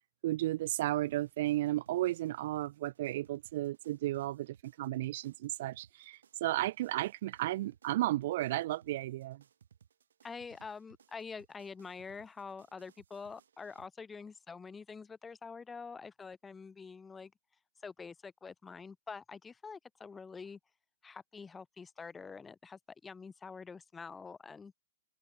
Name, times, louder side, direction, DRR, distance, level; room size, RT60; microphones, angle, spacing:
voice 1, 0.2-9.4, right 15 dB, 45° right, 1.9 m, -34 dB
sound 1, 1.1-13.9, right 8 dB, 85° right, 7.5 m, -64 dB
voice 2, 10.2-17.3 17.8-20.6 21.0-24.7, left 5 dB, 10° left, 3.5 m, -46 dB
open air
hypercardioid pair, 160°, 0 cm